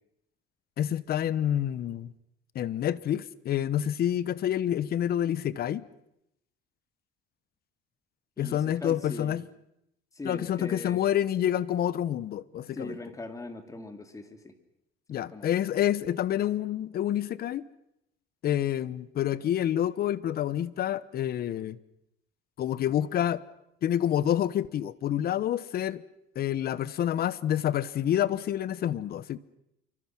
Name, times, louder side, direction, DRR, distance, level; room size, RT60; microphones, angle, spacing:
voice 1, 0.8-2.1 2.5-5.8 8.4-9.4 10.2-13.0 15.1-17.6 18.4-21.8 22.6-23.4 23.8-26.0 26.3-29.4, left 11 dB, 50° left, 18 dB, 1.0 m, -28 dB
voice 2, 8.4-9.4 10.1-11.0 12.7-14.5 15.1-15.5, left 2 dB, 15° left, 7 dB, 2.6 m, -40 dB
27.0 x 24.5 x 6.1 m, 0.81 s
cardioid pair, 120°, 21 cm